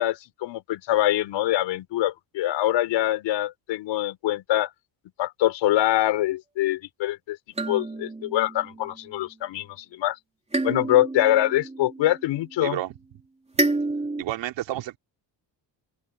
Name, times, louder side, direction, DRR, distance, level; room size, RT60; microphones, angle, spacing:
voice 1, 0.0-4.7 5.2-7.4 7.7-10.2 10.6-12.8, left 14 dB, 85° left, 5.9 m, -24 dB
sound 1, 7.6-9.2 10.5-12.6 13.6-14.2, right 2 dB, 15° right, 2.9 m, -29 dB
voice 2, 12.6-12.9 14.2-15.0, right 14 dB, 85° right, 3.1 m, -30 dB
open air
cardioid pair, 110°, 43 cm